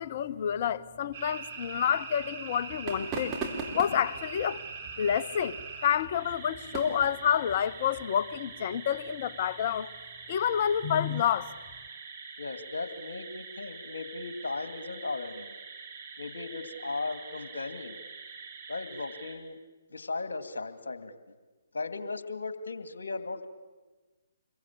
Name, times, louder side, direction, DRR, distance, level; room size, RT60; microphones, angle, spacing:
voice 1, 0.0-3.4 3.7-4.6 5.0-9.9 10.3-11.5, left 9 dB, 40° left, 0.9 m, -28 dB
sound 1, 1.1-19.4, right 5 dB, 40° right, 4.3 m, -44 dB
sound 2, 2.6-8.0, right 3 dB, 15° right, 3.9 m, -41 dB
voice 2, 12.4-15.5 16.2-18.0 18.7-19.6 19.9-21.1 21.7-23.5, left 3 dB, 70° left, 2.4 m, -37 dB
26.5 x 22.5 x 8.7 m
figure-of-eight pair, 130°, 0 cm